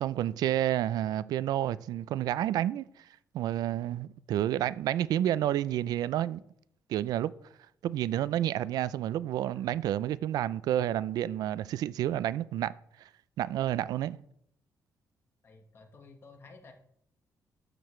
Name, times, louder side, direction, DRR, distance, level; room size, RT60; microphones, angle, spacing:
voice 1, 0.0-2.8 3.3-6.4 6.9-7.3 7.8-12.7 13.0-13.1 13.4-14.2, right 12 dB, 85° right, 0.3 m, -30 dB
voice 2, 15.4-16.7, left 3 dB, 35° left, 1.2 m, -53 dB
12.5 x 6.7 x 3.2 m
cardioid pair, 170°, 7 cm